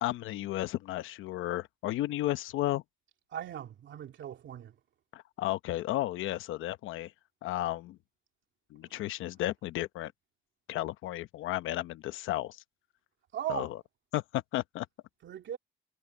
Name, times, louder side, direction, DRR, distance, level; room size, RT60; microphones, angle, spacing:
voice 1, 0.0-2.8 5.1-7.1 7.4-8.0 8.7-10.1 10.7-12.6 13.5-13.7 14.1-14.9, left 15 dB, 85° left, 0.8 m, -33 dB
voice 2, 3.3-4.7 13.3-13.7 15.2-15.6, right 10 dB, 70° right, 2.8 m, -38 dB
cardioid pair, 90°, 20 cm